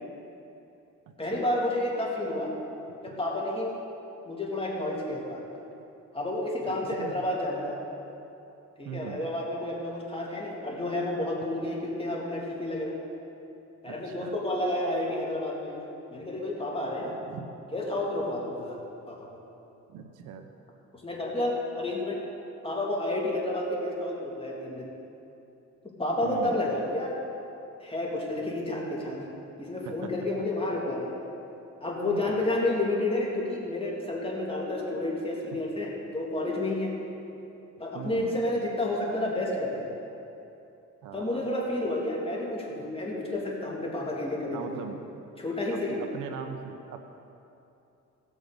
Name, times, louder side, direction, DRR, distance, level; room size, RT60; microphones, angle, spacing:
voice 1, 1.2-2.6 3.0-3.7 4.2-5.4 6.1-7.8 8.8-13.0 13.8-15.8 16.1-17.1 17.7-18.8 19.1-19.3 21.0-22.3 22.6-24.9 26.0-27.2 27.8-29.3 29.6-31.1 31.8-36.9 37.8-39.9 41.1-44.8 45.4-46.0, left 1 dB, 20° left, -4 dB, 2.7 m, -30 dB
voice 2, 6.6-7.2 8.8-9.2 13.9-14.4 17.3-17.5 19.9-20.5 26.2-26.6 29.8-30.1 32.0-32.7 35.5-35.6 37.9-38.4 41.0-41.5 44.5-45.0 45.7-47.0, right 7 dB, 90° right, 6 dB, 0.9 m, -40 dB
17.0 x 6.3 x 5.3 m, 2.9 s
cardioid pair, 90°, 30 cm